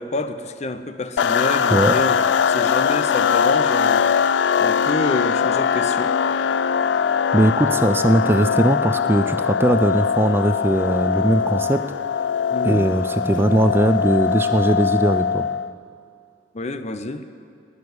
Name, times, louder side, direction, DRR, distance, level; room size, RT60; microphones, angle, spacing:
voice 1, 0.0-2.2 2.5-4.1 4.6-6.1 12.5-12.9 16.5-17.3, left 2 dB, 40° left, 10 dB, 0.7 m, -28 dB
sound 1, 1.2-15.7, left 7 dB, 85° left, 0.4 m, -21 dB
voice 2, 1.7-2.0 7.3-11.8 12.6-15.5, right 1 dB, 15° right, 10 dB, 0.3 m, -19 dB
12.0 x 9.7 x 9.5 m, 2.4 s
head